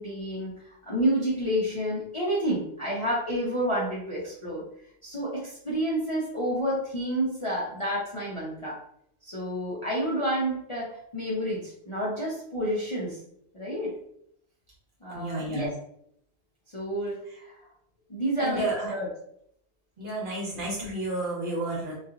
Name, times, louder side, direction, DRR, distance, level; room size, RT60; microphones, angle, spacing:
voice 1, 0.0-4.6 5.0-8.8 9.2-13.2 13.5-13.9 15.0-15.7 16.7-17.7 18.1-19.1, right 1 dB, 35° left, -7 dB, 0.5 m, -29 dB
voice 2, 15.1-15.7 18.4-18.9 20.0-22.0, right 1 dB, 50° right, -5 dB, 1.2 m, -31 dB
2.8 x 2.4 x 2.4 m, 0.71 s
omnidirectional pair, 1.1 m